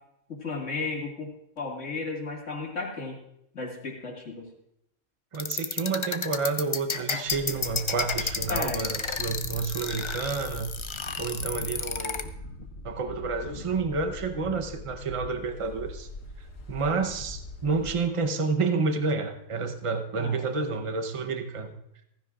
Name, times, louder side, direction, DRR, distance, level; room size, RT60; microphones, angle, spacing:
voice 1, 0.3-3.2 3.5-4.5 8.5-8.9 20.1-20.5, left 3 dB, 70° left, 0 dB, 2.4 m, -34 dB
sound 1, 5.3-12.2, left 5 dB, 40° left, 0.4 m, -31 dB
voice 2, 5.3-10.7 11.2-12.2 12.8-16.1 16.7-21.7, right 4 dB, 30° right, 7 dB, 0.8 m, -29 dB
sound 2, 7.3-17.9, left 2 dB, 90° left, 1.8 m, -42 dB
15.5 x 15.0 x 2.5 m, 0.78 s
omnidirectional pair, 1.3 m